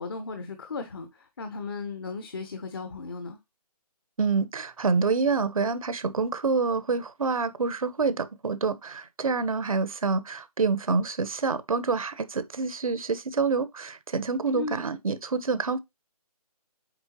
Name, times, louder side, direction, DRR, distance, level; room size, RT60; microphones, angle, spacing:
voice 1, 0.0-3.4 14.5-14.8, left 4 dB, 35° left, 1.0 m, -36 dB
voice 2, 4.2-15.8, right 4 dB, 60° right, 1.1 m, -27 dB
7.9 x 4.4 x 2.9 m
hypercardioid pair, 170°, 20 cm